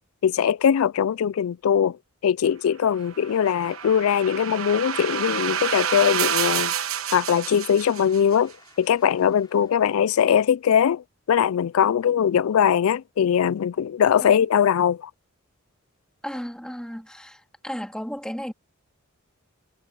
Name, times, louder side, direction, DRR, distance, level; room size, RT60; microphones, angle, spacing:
voice 1, 0.2-2.0 2.2-6.7 7.1-8.5 8.8-15.1, left 8 dB, 75° left, 0.3 m, -21 dB
Applause / Crowd, 2.9-10.3, left 3 dB, 20° left, 2.9 m, -54 dB
sound 1, 3.1-8.4, right 9 dB, 70° right, 1.1 m, -28 dB
voice 2, 16.2-18.5, equal, 5° left, 2.0 m, -34 dB
head